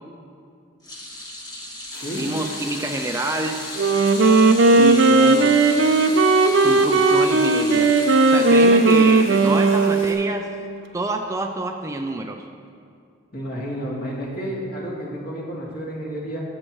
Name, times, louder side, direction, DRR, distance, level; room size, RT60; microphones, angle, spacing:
sound 1, 0.8-9.3 9.7-9.9 11.1-11.2, left 1 dB, 20° left, 1.4 m, -36 dB
sound 2, 1.9-10.1, left 2 dB, 80° left, 2.6 m, -40 dB
voice 1, 2.2-3.6 4.8-5.7 6.6-7.9 8.3-10.5 10.9-12.4, right 2 dB, 15° right, 4 dB, 0.4 m, -27 dB
Wind instrument woodwind instrument, 3.8-10.5, right 3 dB, 70° right, 0.7 m, -16 dB
voice 2, 13.3-16.4, equal, 50° left, -4 dB, 2.2 m, -31 dB
20.5 x 7.6 x 3.1 m, 2.4 s
head